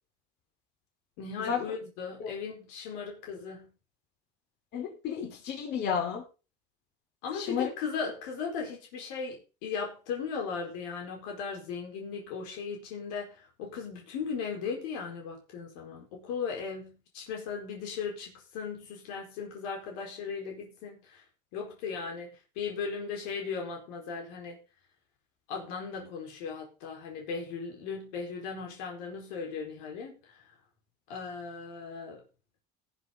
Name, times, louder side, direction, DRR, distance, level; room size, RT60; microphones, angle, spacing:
voice 1, 1.2-3.7 7.2-21.2 21.5-24.6 25.5-30.4 31.1-32.2, left 5 dB, 85° left, 0 dB, 4.8 m, -37 dB
voice 2, 4.7-6.2 7.3-7.7, left 7 dB, 55° left, 3 dB, 5.2 m, -32 dB
18.0 x 8.2 x 4.0 m, 0.32 s
cardioid pair, 130°, 20 cm